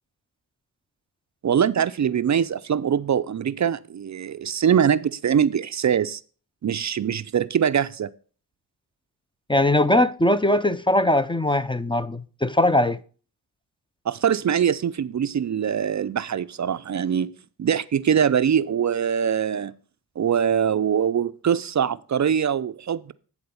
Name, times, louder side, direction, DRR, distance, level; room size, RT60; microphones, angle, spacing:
voice 1, 1.4-6.2 6.6-8.1 14.1-17.3 17.6-19.7 20.2-23.1, right 8 dB, 45° right, 0.5 m, -23 dB
voice 2, 9.5-13.0, left 1 dB, 10° left, 0.5 m, -20 dB
9.6 x 3.9 x 6.9 m
cardioid pair, 40°, 41 cm